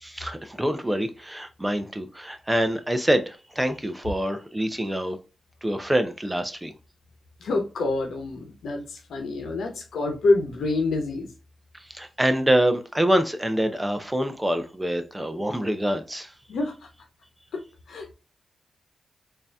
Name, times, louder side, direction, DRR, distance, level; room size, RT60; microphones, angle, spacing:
voice 1, 0.0-5.2 5.6-6.7 11.9-16.3, right 1 dB, 10° right, 0.7 m, -25 dB
voice 2, 7.4-11.3 16.5-16.7 17.5-17.6 17.9-18.1, left 2 dB, 85° left, 1.0 m, -26 dB
3.9 x 2.8 x 3.4 m
cardioid pair, 85°, 0 cm